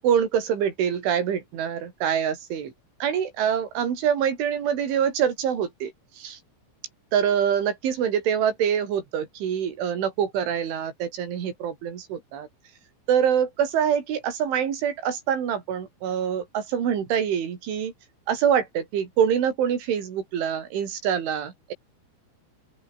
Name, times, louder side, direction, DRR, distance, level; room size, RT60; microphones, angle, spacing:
voice 1, 0.0-2.7 3.0-6.4 7.1-12.5 13.1-17.9 18.3-21.7, right 8 dB, 75° right, 6.1 m, -25 dB
open air
omnidirectional pair, 5.5 m